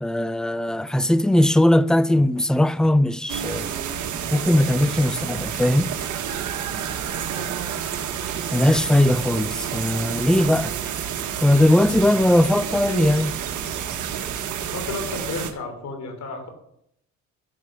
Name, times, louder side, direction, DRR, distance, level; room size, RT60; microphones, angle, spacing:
voice 1, 0.0-3.7 4.3-5.9 8.5-10.7 11.4-13.3, left 1 dB, ahead, 0.4 m, -19 dB
sound 1, 3.3-15.5, right 8 dB, 80° right, 1.4 m, -29 dB
voice 2, 7.0-7.7 12.7-13.1 14.7-16.5, left 2 dB, 65° left, 3.3 m, -33 dB
11.5 x 6.9 x 6.3 m
cardioid pair, 90°, 30 cm